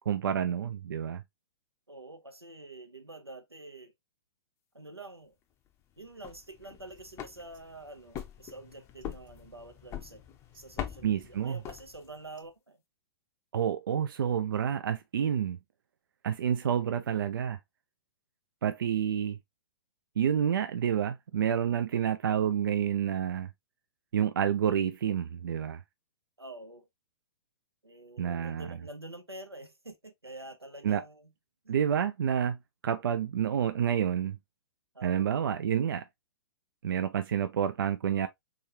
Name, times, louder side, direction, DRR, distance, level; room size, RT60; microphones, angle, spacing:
voice 1, 0.1-1.2 11.0-11.6 13.5-15.6 16.2-17.6 18.6-19.4 20.2-23.5 24.1-25.8 28.2-28.8 30.8-31.0 31.7-32.6 32.8-34.4 35.0-36.0 36.8-38.3, right 9 dB, 60° right, 0.4 m, -29 dB
voice 2, 1.9-3.9 4.7-5.4 6.0-10.2 10.5-12.8 26.4-26.9 27.8-31.3 31.6-31.7 34.9-35.3, right 2 dB, 90° right, 0.8 m, -47 dB
sound 1, 6.0-12.3, left 10 dB, 20° left, 0.6 m, -43 dB
3.5 x 3.1 x 2.6 m
figure-of-eight pair, 110°, 13 cm